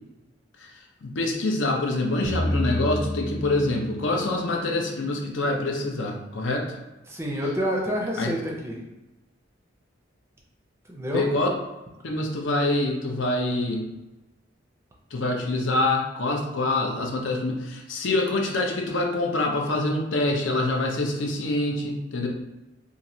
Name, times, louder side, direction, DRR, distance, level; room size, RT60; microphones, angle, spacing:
voice 1, 0.6-6.8 8.2-8.4 11.1-11.5 12.0-13.9 15.1-22.3, left 2 dB, 70° left, 1 dB, 0.6 m, -26 dB
sound 1, 2.2-6.0, left 1 dB, 45° left, 0.8 m, -31 dB
voice 2, 7.1-8.8 10.9-11.3, equal, 15° right, -2 dB, 0.5 m, -28 dB
3.1 x 2.5 x 2.7 m, 1.0 s
head